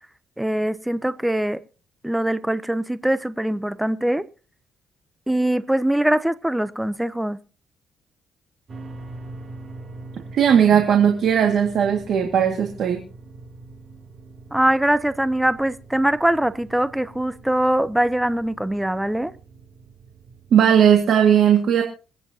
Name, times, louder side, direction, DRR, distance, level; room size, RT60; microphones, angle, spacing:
voice 1, 0.4-1.6 2.0-4.2 5.3-7.4 14.5-19.3, right 1 dB, 5° right, 0.7 m, -22 dB
sound 1, 8.7-21.0, right 2 dB, 45° right, 3.0 m, -43 dB
voice 2, 10.3-13.0 20.5-21.8, right 8 dB, 65° right, 2.0 m, -17 dB
26.5 x 9.3 x 2.8 m
cardioid pair, 90°, 0 cm